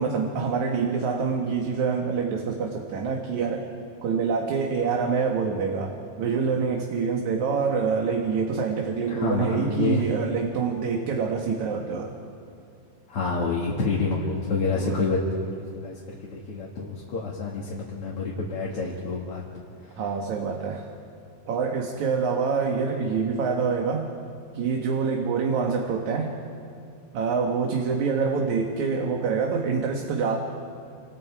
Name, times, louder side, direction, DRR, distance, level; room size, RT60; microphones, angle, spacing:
voice 1, 0.0-3.7 4.0-12.1 14.7-15.0 20.0-20.9 21.5-24.1 24.5-26.3 27.1-30.4, right 5 dB, 65° right, 2 dB, 2.6 m, -26 dB
voice 2, 9.1-10.1 13.1-16.0 16.3-19.4 19.8-20.0, left 3 dB, 45° left, -4 dB, 2.8 m, -28 dB
28.5 x 26.5 x 4.8 m, 2.5 s
omnidirectional pair, 3.9 m